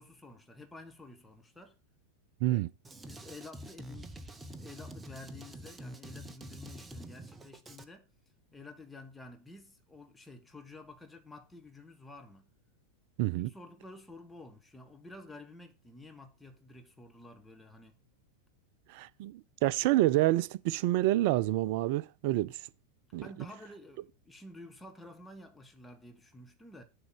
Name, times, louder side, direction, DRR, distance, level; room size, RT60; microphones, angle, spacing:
voice 1, 0.0-1.7 2.5-2.6 3.0-4.1 4.6-8.1 8.5-12.5 13.4-18.0 23.2-26.8, left 2 dB, 5° left, 1.2 m, -51 dB
Drum kit, 2.8-7.8, right 1 dB, 15° right, 0.7 m, -46 dB
voice 2, 13.2-13.5 18.9-22.6 23.1-23.3, right 16 dB, 45° right, 0.3 m, -28 dB
6.9 x 3.7 x 6.3 m
figure-of-eight pair, 90°, 0 cm